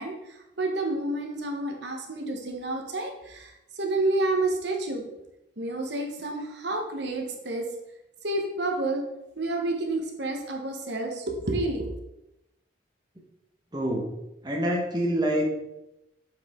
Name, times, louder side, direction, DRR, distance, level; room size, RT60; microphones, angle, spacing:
voice 1, 0.0-5.0 5.6-7.7 8.2-9.1 9.4-11.9, right 2 dB, 60° right, 2 dB, 1.0 m, -29 dB
voice 2, 13.7-14.1 14.4-15.5, equal, 20° right, -1 dB, 1.0 m, -26 dB
7.8 x 4.8 x 3.6 m, 0.90 s
head